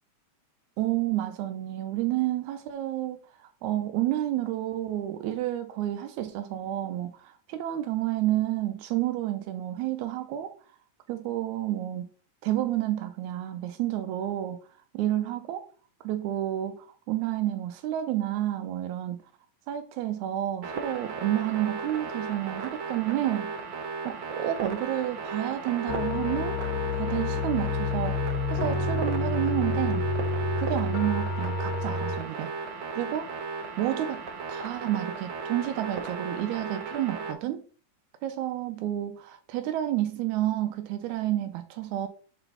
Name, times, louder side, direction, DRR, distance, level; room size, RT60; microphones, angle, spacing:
voice 1, 0.8-10.5 11.1-12.1 12.4-14.6 14.9-15.7 16.0-19.2 19.7-23.5 24.0-26.6 26.9-28.2 28.5-30.1 30.6-32.5 33.0-33.3 33.8-34.2 34.5-37.6 38.2-42.1, right 13 dB, 90° right, 2.0 m, -30 dB
sound 1, 20.6-37.3, right 4 dB, 70° right, 1.2 m, -36 dB
sound 2, 25.9-32.2, left 2 dB, 70° left, 1.6 m, -29 dB
4.8 x 4.1 x 5.5 m
omnidirectional pair, 3.3 m